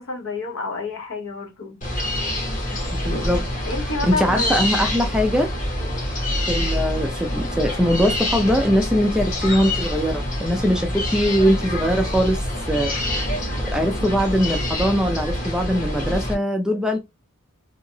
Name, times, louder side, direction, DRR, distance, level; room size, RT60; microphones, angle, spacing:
voice 1, 0.0-1.8 3.6-4.6 5.8-6.1, left 3 dB, 60° left, 0.8 m, -29 dB
sound 1, 1.8-16.3, left 1 dB, 35° left, 1.2 m, -26 dB
voice 2, 2.9-3.4 4.1-5.5 6.5-13.1 13.7-17.0, equal, 5° right, 0.4 m, -21 dB
2.9 x 2.8 x 2.6 m
head